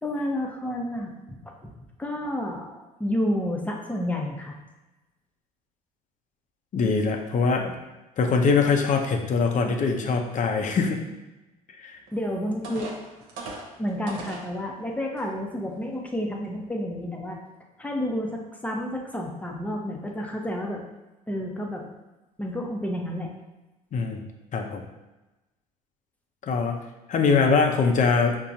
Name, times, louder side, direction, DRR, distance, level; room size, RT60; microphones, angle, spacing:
voice 1, 0.0-1.7 2.0-4.5 12.1-12.9 13.8-17.4 17.8-20.8 21.3-21.8 22.4-23.3, equal, 10° left, 0 dB, 0.8 m, -30 dB
voice 2, 6.7-7.7 8.2-11.0 11.8-12.0 23.9-24.2 24.5-24.8 26.5-26.8 27.1-28.4, left 4 dB, 45° left, 3 dB, 0.7 m, -23 dB
sound 1, 12.1-12.2 12.6-14.5 15.2-15.3 15.8-16.0, right 3 dB, 65° right, 0.9 m, -38 dB
5.6 x 2.2 x 2.6 m, 1.1 s
hypercardioid pair, 65°, 18 cm